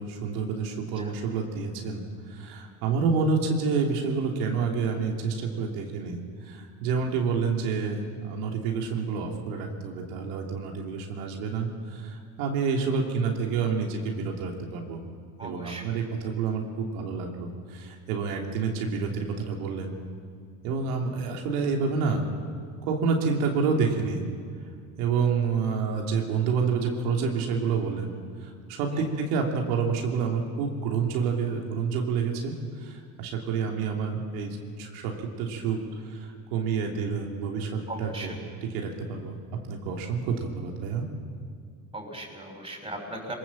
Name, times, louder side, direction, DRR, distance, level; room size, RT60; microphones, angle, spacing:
voice 1, 0.0-15.0 15.4-19.9 20.6-22.2 22.8-24.2 25.0-28.1 28.4-38.3 38.6-39.4 39.7-41.0, right 5 dB, 90° right, 1 dB, 3.1 m, -28 dB
voice 2, 15.4-15.8 28.9-29.1 37.9-38.4 41.9-43.3, right 1 dB, 10° right, 2 dB, 6.0 m, -38 dB
23.0 x 20.5 x 7.6 m, 2.1 s
supercardioid pair, 85°, 44 cm